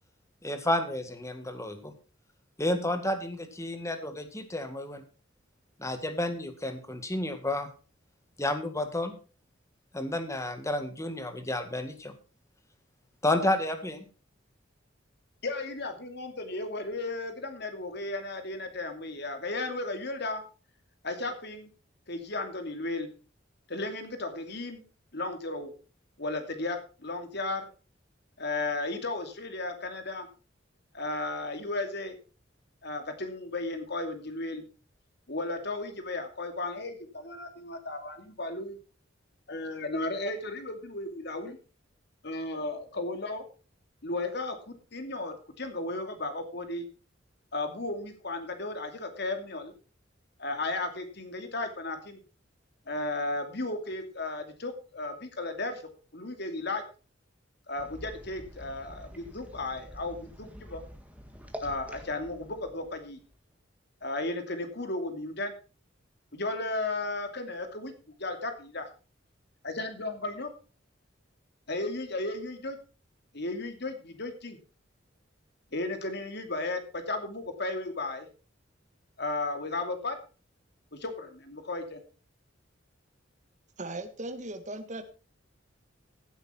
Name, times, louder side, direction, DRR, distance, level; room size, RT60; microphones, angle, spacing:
voice 1, 0.4-1.9 2.6-5.0 5.8-7.7 8.4-9.1 9.9-12.1 13.2-14.0, left 1 dB, 15° left, 8 dB, 1.8 m, -31 dB
voice 2, 15.4-20.4 21.0-21.7 22.1-23.1 23.7-24.8 25.1-25.7 26.2-27.7 28.4-30.3 30.9-32.2 32.8-34.6 35.3-38.8 39.5-41.6 42.2-43.4 44.0-46.9 47.5-49.7 50.4-52.2 52.9-55.8 56.1-56.8 57.7-60.8 61.6-63.2 64.0-65.5 66.3-68.9 69.6-70.5 71.7-72.8 73.3-74.6 75.7-78.3 79.2-80.2 80.9-82.0, left 2 dB, 60° left, 7 dB, 2.6 m, -34 dB
sound 1, 57.7-63.6, equal, 10° right, 1.9 m, -47 dB
voice 3, 83.8-85.0, right 2 dB, 40° right, 8 dB, 1.6 m, -38 dB
16.0 x 8.3 x 4.4 m, 0.35 s
head